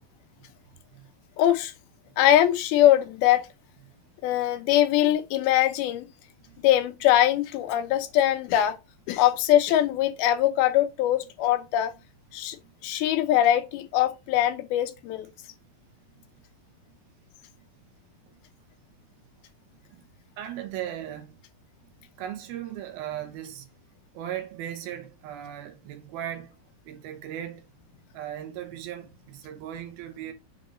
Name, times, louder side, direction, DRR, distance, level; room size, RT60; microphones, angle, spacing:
voice 1, 1.4-1.7 2.2-3.5 4.2-6.1 6.6-8.8 9.1-11.9 12.3-12.6 12.8-15.3, left 12 dB, 85° left, 2.8 m, -22 dB
voice 2, 20.4-21.4 22.2-23.7 24.1-26.6 26.8-27.6 28.1-30.3, right 11 dB, 80° right, 3.0 m, -37 dB
7.1 x 3.8 x 4.9 m
omnidirectional pair, 4.2 m